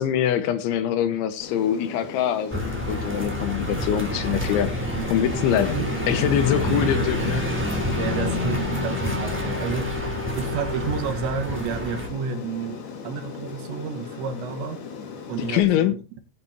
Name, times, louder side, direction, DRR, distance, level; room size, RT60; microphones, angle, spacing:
voice 1, 0.0-4.7 5.1-5.8 6.1-7.4 15.4-16.0, left 10 dB, 85° left, 3.7 m, -24 dB
Aircraft, 1.4-15.6, left 6 dB, 60° left, 3.8 m, -38 dB
sound 1, 2.5-12.1, left 1 dB, 5° right, 3.0 m, -28 dB
sound 2, 5.3-11.0, left 4 dB, 35° left, 4.0 m, -36 dB
voice 2, 5.5-6.0 6.5-7.0 8.0-10.0 10.4-14.8 15.3-16.2, right 5 dB, 75° right, 3.6 m, -31 dB
20.0 x 9.0 x 2.9 m
omnidirectional pair, 5.4 m